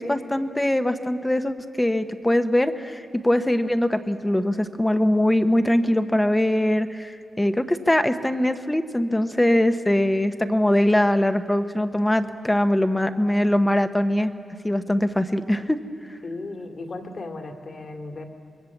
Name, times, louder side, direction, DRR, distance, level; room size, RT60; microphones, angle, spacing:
voice 1, 0.0-14.3 14.6-15.8, left 1 dB, 10° left, 9 dB, 1.0 m, -22 dB
voice 2, 16.2-18.2, left 2 dB, 50° left, 4 dB, 2.4 m, -35 dB
25.0 x 22.0 x 7.2 m, 2.4 s
cardioid pair, 95°, 0 cm